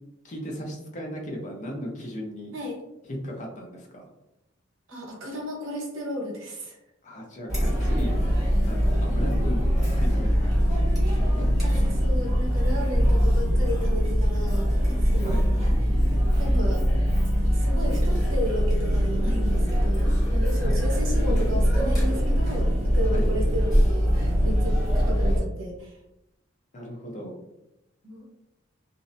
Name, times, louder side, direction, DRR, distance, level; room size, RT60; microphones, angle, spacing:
voice 1, 0.2-2.6 3.0-4.1 7.0-8.3 8.6-10.9 11.1-11.6 15.2-15.4 20.5-20.8 23.1-23.3 26.7-27.4, equal, 40° left, 0 dB, 0.6 m, -37 dB
voice 2, 4.9-6.8 11.6-14.7 15.0-15.7 16.1-16.8 17.5-26.0 28.0-28.3, equal, 80° right, -1 dB, 0.8 m, -34 dB
Chatter, 7.5-25.4, equal, ahead, 1.2 m, -22 dB
2.6 x 2.0 x 2.6 m, 0.87 s
head